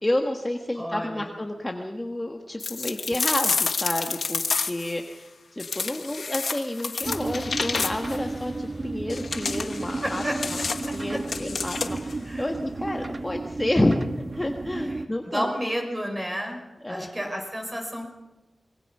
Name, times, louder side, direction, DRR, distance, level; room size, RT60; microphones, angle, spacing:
voice 1, 0.0-10.6 10.9-14.0 14.3-15.5 16.8-17.1, left 1 dB, 15° left, 3 dB, 1.5 m, -30 dB
voice 2, 0.8-1.3 10.0-10.3 12.2-12.5 15.3-16.6 16.9-18.1, equal, 15° right, 2 dB, 5.9 m, -30 dB
sound 1, 2.6-5.0 5.6-8.2 9.1-12.1, left 4 dB, 65° left, 1.1 m, -29 dB
sound 2, 7.0-15.1, right 3 dB, 40° right, 1.1 m, -33 dB
25.5 x 22.0 x 5.6 m, 1.0 s
wide cardioid pair, 130°, 0 cm